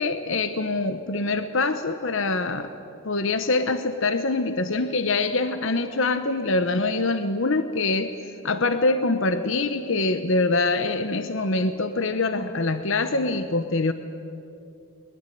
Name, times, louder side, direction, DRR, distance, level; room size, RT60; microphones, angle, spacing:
voice 1, 0.0-2.7 3.0-8.1 8.4-13.9, left 3 dB, 60° left, 10 dB, 1.0 m, -24 dB
22.0 x 21.5 x 9.3 m, 2.7 s
head